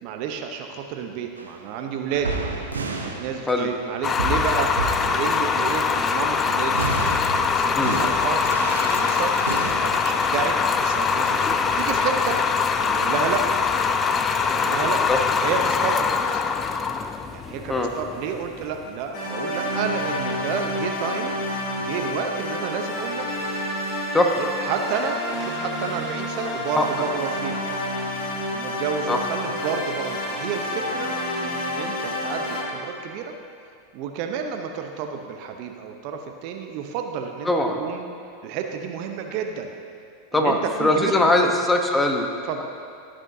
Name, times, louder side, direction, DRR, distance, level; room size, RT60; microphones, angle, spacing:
voice 1, 0.0-2.4 3.0-4.7 5.0-6.9 7.3-8.6 8.8-9.3 9.8-12.4 12.9-13.4 14.5-15.0 15.4-16.5 17.3-21.3 21.8-23.3 24.4-27.5 28.5-33.3 33.9-37.5 37.8-38.0 38.4-39.7 40.3-41.1 41.4-41.5 42.5-42.6, right 7 dB, 55° right, 4 dB, 0.7 m, -30 dB
sound 1, 1.4-1.6 2.1-3.9 4.1-6.2 6.7-12.0, right 3 dB, 90° right, 0.8 m, -31 dB
sound 2, 4.0-19.0, left 5 dB, 25° left, 0.4 m, -23 dB
sound 3, 19.1-32.6, left 1 dB, 40° left, 2.0 m, -29 dB
voice 2, 37.5-37.8 40.3-42.3, left 2 dB, 10° left, 3 dB, 0.9 m, -21 dB
15.0 x 6.2 x 2.7 m, 2.4 s
hypercardioid pair, 95°, 0 cm